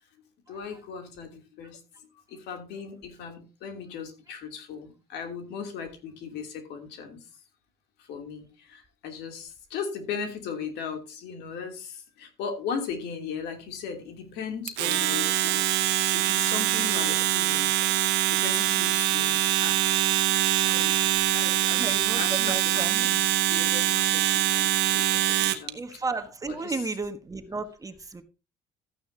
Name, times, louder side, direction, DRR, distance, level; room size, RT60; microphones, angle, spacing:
voice 1, 0.5-1.8 2.3-7.3 8.0-17.7 18.3-19.8 20.6-26.0 26.4-26.9, left 6 dB, 85° left, 5 dB, 3.0 m, -37 dB
Domestic sounds home sounds, 14.7-25.7, right 14 dB, 85° right, 1.3 m, -24 dB
voice 2, 21.8-23.1 25.7-28.2, right 3 dB, 20° right, 8 dB, 1.3 m, -34 dB
13.5 x 9.7 x 2.8 m, 0.29 s
cardioid pair, 110°, 17 cm